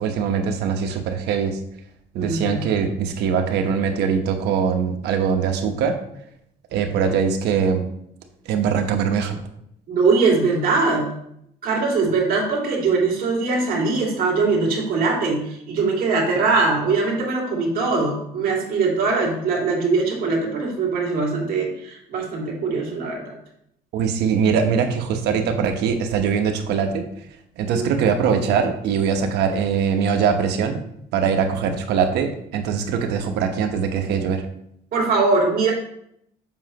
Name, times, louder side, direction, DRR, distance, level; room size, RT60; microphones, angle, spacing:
voice 1, 0.0-1.6 2.1-6.0 6.7-7.8 8.4-9.4 23.9-27.1 27.6-30.8 31.1-34.5, right 6 dB, 80° right, 5 dB, 1.1 m, -22 dB
voice 2, 2.1-2.6 9.9-11.1 11.6-23.4 27.7-28.0 34.9-35.7, right 4 dB, 60° right, -2 dB, 2.5 m, -21 dB
7.4 x 5.8 x 3.0 m, 0.73 s
cardioid pair, 110°, 17 cm